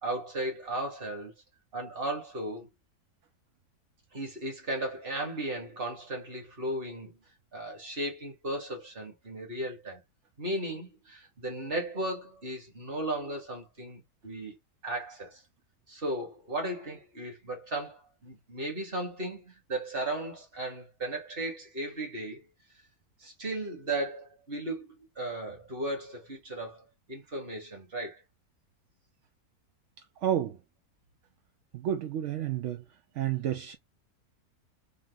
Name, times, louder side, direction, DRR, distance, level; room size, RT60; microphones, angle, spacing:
voice 1, 0.0-1.3 1.7-2.7 4.1-7.2 7.5-10.0 10.4-14.6 14.8-15.4 15.9-22.5 23.2-28.2, right 1 dB, 40° right, 1.7 m, -36 dB
voice 2, 30.2-30.6 31.7-32.8 33.2-33.8, right 10 dB, 65° right, 0.7 m, -30 dB
3.6 x 2.5 x 3.9 m
omnidirectional pair, 1.6 m